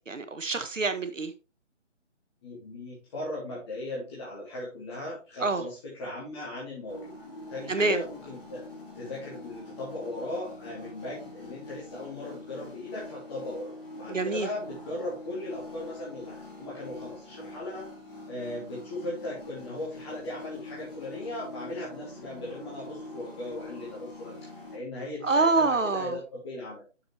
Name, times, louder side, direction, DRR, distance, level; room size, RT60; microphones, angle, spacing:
voice 1, 0.1-1.3 5.4-5.6 7.7-8.0 14.1-14.5 25.2-26.2, right 3 dB, 85° right, 1.4 m, -26 dB
voice 2, 2.4-7.1 7.5-8.6 8.9-17.9 18.3-26.8, left 1 dB, 20° left, 2.1 m, -38 dB
sound 1, 6.9-24.8, left 2 dB, 45° left, 3.5 m, -44 dB
7.2 x 6.8 x 3.2 m
figure-of-eight pair, 155°, 37 cm